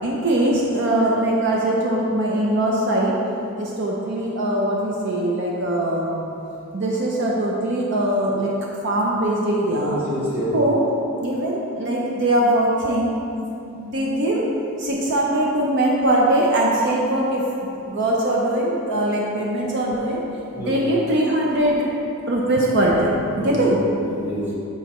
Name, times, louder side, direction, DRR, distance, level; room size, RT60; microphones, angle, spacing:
voice 1, 0.0-3.2 3.6-6.3 6.7-8.5 8.8-10.0 10.5-10.8 11.1-13.2 13.8-14.5 14.8-17.5 17.8-20.2 20.6-21.8 22.3-23.8, right 1 dB, 55° right, -3 dB, 0.6 m, -21 dB
voice 2, 9.8-10.6 20.5-20.8 23.3-24.6, equal, 10° right, -7 dB, 1.1 m, -27 dB
7.9 x 4.1 x 3.0 m, 2.8 s
head